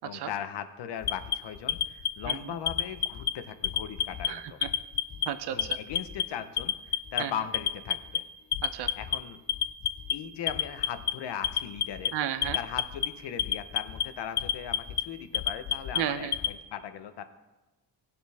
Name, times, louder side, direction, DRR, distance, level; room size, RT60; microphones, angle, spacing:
voice 1, 0.0-4.6 5.5-8.2 9.0-9.4 10.1-12.1 12.5-17.2, left 9 dB, 90° left, 10 dB, 1.0 m, -38 dB
Alarm, 1.0-2.3 2.7-3.3 3.6-4.3 4.6-5.3 5.6-6.2 6.6-7.2 7.5-8.2 8.5-9.2 9.5-10.1 10.5-11.1 11.4-12.1 12.4-13.1 13.4-14.0 14.4-15.0 15.3-16.5, left 9 dB, 45° left, 0.5 m, -28 dB
voice 2, 4.3-4.7 5.3-5.8 7.2-7.3 8.6-8.9 12.1-12.6 16.0-16.4, right 11 dB, 75° right, 12 dB, 0.8 m, -33 dB
18.5 x 7.1 x 3.5 m, 1.1 s
wide cardioid pair, 175°, 40 cm